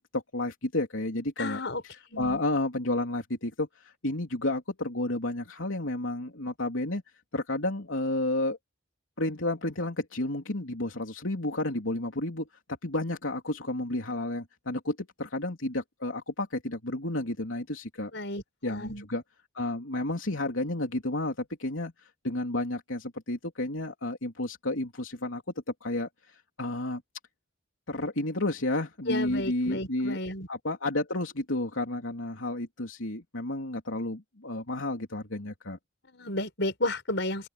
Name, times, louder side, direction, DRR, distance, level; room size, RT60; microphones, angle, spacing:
voice 1, 0.1-7.0 7.3-8.6 9.2-12.5 12.8-18.1 18.6-19.2 19.5-21.9 22.2-25.4 25.8-27.0 27.9-30.2 30.5-35.8, left 1 dB, 80° left, 3.3 m, -31 dB
voice 2, 1.4-1.8 2.1-2.4 18.1-19.0 29.1-30.5 36.1-37.5, left 1 dB, 60° left, 6.2 m, -32 dB
open air
head